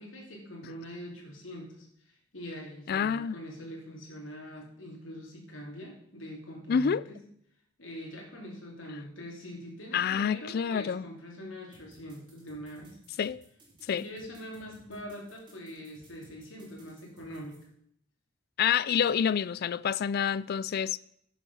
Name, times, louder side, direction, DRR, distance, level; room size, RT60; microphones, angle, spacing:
voice 1, 0.0-7.2 7.8-13.0 13.8-17.6, equal, 85° left, 3.0 m, -43 dB
voice 2, 2.9-3.4 6.7-7.0 9.9-11.0 13.2-13.4 13.9-14.1 18.6-21.0, left 7 dB, 55° left, 0.3 m, -27 dB
sound 1, 11.7-17.6, right 1 dB, 25° right, 3.0 m, -58 dB
11.0 x 7.3 x 5.5 m
head